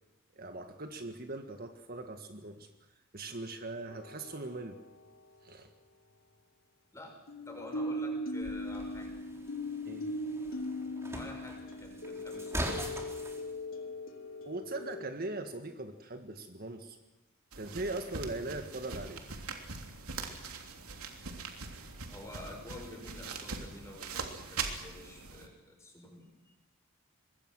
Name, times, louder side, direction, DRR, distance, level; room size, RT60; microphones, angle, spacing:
voice 1, 0.4-2.7 3.1-4.8 5.4-5.7 9.8-10.1 14.4-17.0 17.6-19.2, right 2 dB, 45° right, 6 dB, 1.7 m, -40 dB
sound 1, 3.9-4.7 7.3-15.1, left 1 dB, 65° left, 2.8 m, -39 dB
voice 2, 7.5-9.1 11.1-12.8 22.1-26.5, left 1 dB, 15° left, 2 dB, 6.5 m, -49 dB
sound 2, 8.4-13.4, right 1 dB, 10° right, 3.5 m, -41 dB
sound 3, 17.5-25.5, right 4 dB, 85° right, 3.2 m, -42 dB
25.5 x 22.0 x 6.4 m, 1.0 s
head